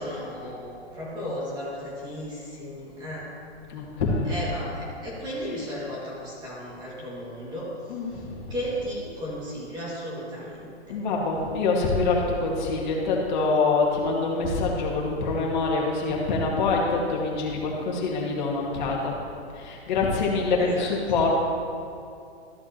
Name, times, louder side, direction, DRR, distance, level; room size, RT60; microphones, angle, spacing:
voice 1, 0.0-3.3 4.3-7.9 8.5-11.0 20.6-20.8, equal, 15° right, -6 dB, 2.2 m, -35 dB
voice 2, 3.7-4.4 5.2-5.6 7.9-8.7 10.9-19.1 19.5-21.3, left 3 dB, 40° left, -2 dB, 2.0 m, -25 dB
13.5 x 7.9 x 3.0 m, 2.4 s
hypercardioid pair, 160°, 34 cm